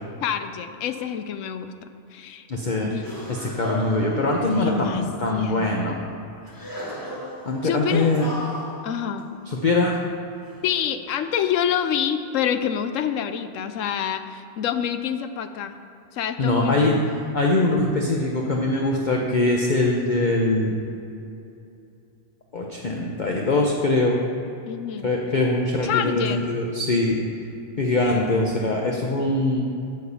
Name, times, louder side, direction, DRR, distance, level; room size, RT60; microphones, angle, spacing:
voice 1, 0.2-2.5 2.8-3.0 4.6-5.0 5.3-5.7 7.6-8.1 8.8-9.3 10.6-15.7 16.1-17.0 24.7-25.1 25.8-26.5 28.2-29.2, left 8 dB, 80° left, 10 dB, 1.0 m, -27 dB
voice 2, 2.5-2.9 3.3-6.0 7.5-8.3 9.5-9.9 16.4-16.9 17.3-20.7 22.5-24.2 25.0-27.2 27.8-29.6, left 2 dB, 40° left, -1 dB, 0.9 m, -22 dB
sound 1, 3.0-5.5 6.5-9.8 10.3-10.6 11.4-11.8, left 1 dB, 15° left, 1.1 m, -37 dB
9.2 x 6.7 x 7.0 m, 2.7 s
omnidirectional pair, 1.3 m